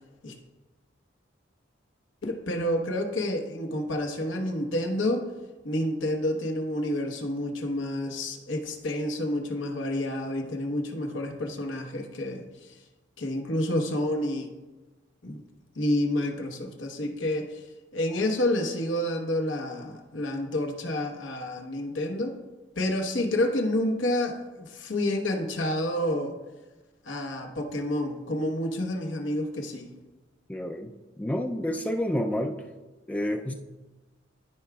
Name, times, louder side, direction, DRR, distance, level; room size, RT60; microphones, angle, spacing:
voice 1, 2.2-5.2 5.6-12.4 13.2-14.5 15.2-15.4 15.7-17.6 17.9-22.3 22.8-26.3 27.0-29.9, left 1 dB, 85° left, 3 dB, 1.1 m, -29 dB
voice 2, 30.5-30.9 31.2-32.6 33.1-33.5, left 1 dB, 10° left, 3 dB, 0.4 m, -29 dB
14.0 x 4.9 x 2.3 m, 1.2 s
head